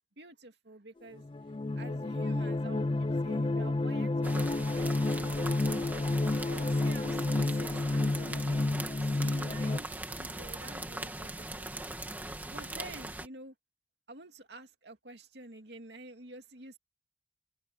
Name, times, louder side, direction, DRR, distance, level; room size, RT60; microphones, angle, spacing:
voice 1, 0.2-1.2 1.8-6.0 6.5-9.9 10.2-11.7 12.5-13.5 14.1-16.8, right 2 dB, 75° right, 2.5 m, -49 dB
sound 1, 1.2-9.8, left 2 dB, 30° left, 0.4 m, -30 dB
sound 2, 4.2-13.3, right 2 dB, 10° right, 2.1 m, -40 dB
head